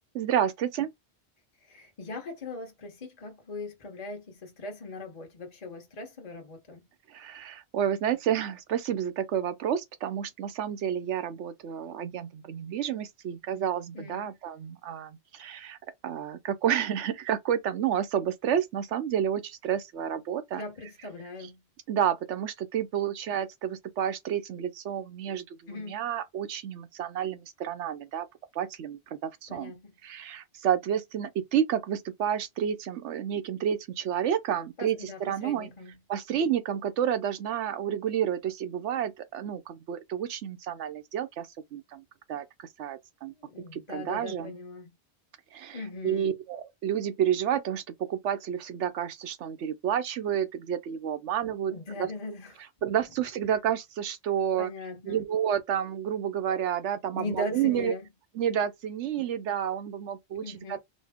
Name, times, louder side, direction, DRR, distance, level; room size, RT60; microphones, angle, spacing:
voice 1, 0.1-0.9 7.1-15.8 16.0-20.6 21.9-28.3 28.5-29.7 30.0-35.7 36.1-41.5 41.7-42.0 42.3-43.3 43.7-44.5 45.5-47.8 48.1-51.7 52.0-52.1 52.8-54.7 55.1-57.9 58.3-60.8, right 9 dB, 90° right, 1.0 m, -30 dB
voice 2, 1.6-6.9 13.9-14.3 20.5-21.6 25.7-26.0 29.5-29.9 34.8-36.0 43.3-44.9 45.7-46.4 51.7-52.6 54.6-55.2 57.1-58.1 60.4-60.8, left 2 dB, 40° left, 1.0 m, -40 dB
4.1 x 2.0 x 3.5 m
omnidirectional pair, 1.2 m